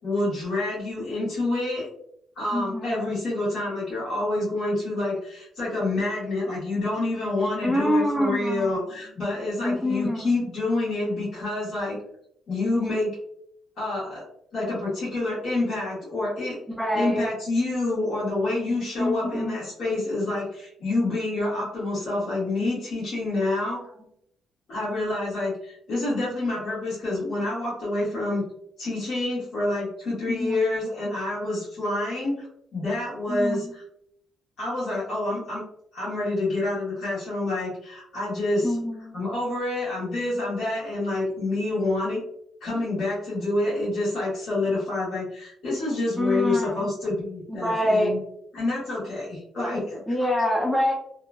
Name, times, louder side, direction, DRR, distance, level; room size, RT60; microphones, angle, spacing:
voice 1, 0.0-1.9 2.3-12.0 12.5-13.2 13.8-14.2 14.5-16.6 16.9-23.8 24.7-28.4 28.8-32.5 32.7-33.8 34.6-35.6 35.9-38.7 39.1-42.2 42.6-48.2 48.5-50.0, left 2 dB, 60° left, -9 dB, 1.4 m, -27 dB
voice 2, 2.5-3.1 7.6-8.8 9.6-10.3 16.8-17.3 19.0-19.6 30.3-30.7 33.3-33.7 38.6-39.2 46.2-46.9 47.5-48.1 50.1-50.9, left 1 dB, 5° left, -1 dB, 0.6 m, -25 dB
2.8 x 2.5 x 2.2 m, 0.70 s
cardioid pair, 90°, 0 cm